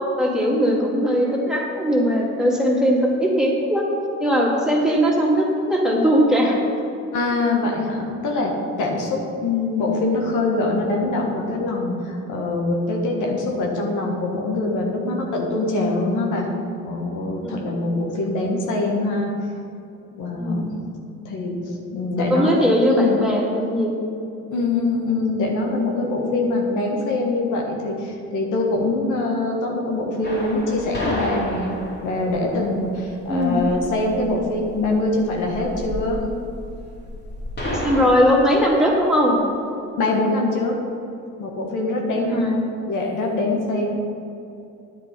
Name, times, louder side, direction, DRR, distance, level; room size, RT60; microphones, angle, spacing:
voice 1, 0.2-3.8 4.2-6.6 17.4-18.0 20.4-20.8 22.2-24.0 33.3-33.6 37.7-39.4 42.1-42.6, equal, ahead, -4 dB, 2.5 m, -20 dB
voice 2, 7.1-8.5 8.8-16.5 16.8-19.3 20.1-20.7 21.2-23.2 24.5-36.2 40.0-40.7 41.4-43.9, left 2 dB, 85° left, 0 dB, 1.7 m, -24 dB
sound 1, 30.2-38.1, left 1 dB, 35° left, 2.7 m, -32 dB
10.5 x 8.0 x 5.2 m, 2.8 s
cardioid pair, 90°, 30 cm